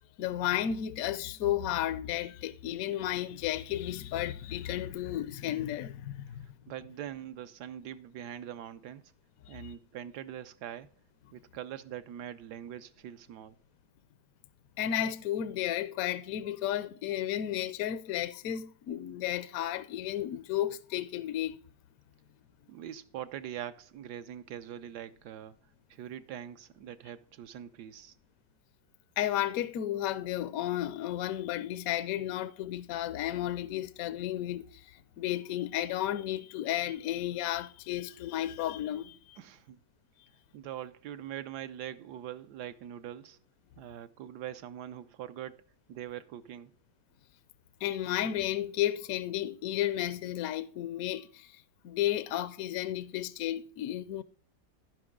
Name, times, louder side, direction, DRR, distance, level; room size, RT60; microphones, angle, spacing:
voice 1, 0.2-6.5 9.5-9.7 14.8-21.6 29.2-39.4 47.8-54.2, left 12 dB, 70° left, 0.9 m, -33 dB
voice 2, 6.4-9.1 9.5-10.9 11.3-13.6 22.7-25.5 25.9-28.2 39.4-39.8 40.5-43.4 43.8-45.6 45.9-46.7, right 10 dB, 75° right, 1.1 m, -43 dB
15.5 x 5.2 x 3.6 m
omnidirectional pair, 1.8 m